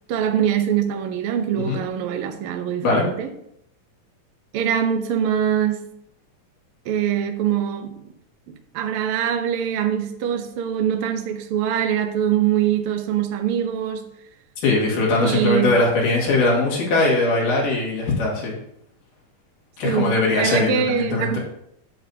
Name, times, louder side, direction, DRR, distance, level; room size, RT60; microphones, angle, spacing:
voice 1, 0.1-3.3 4.5-5.8 6.8-8.0 8.5-14.0 15.2-15.7 19.8-21.4, right 9 dB, 90° right, 1.2 m, -23 dB
voice 2, 14.6-18.6 19.8-21.4, left 2 dB, 80° left, 3.9 m, -20 dB
10.5 x 7.2 x 2.8 m
omnidirectional pair, 3.7 m